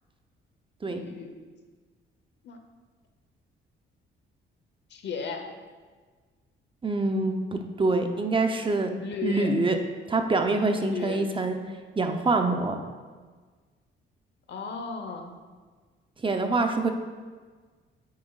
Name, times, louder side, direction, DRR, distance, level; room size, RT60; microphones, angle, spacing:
voice 1, 0.8-1.3 2.4-2.6 4.9-5.4 9.0-9.5 10.9-11.2 14.5-15.4, left 5 dB, 60° left, 5 dB, 1.0 m, -35 dB
voice 2, 6.8-8.9 9.2-9.8 10.1-11.6 12.0-12.8 16.2-16.9, right 3 dB, 25° right, 5 dB, 0.7 m, -25 dB
8.7 x 7.2 x 2.4 m, 1.5 s
cardioid pair, 90°, 20 cm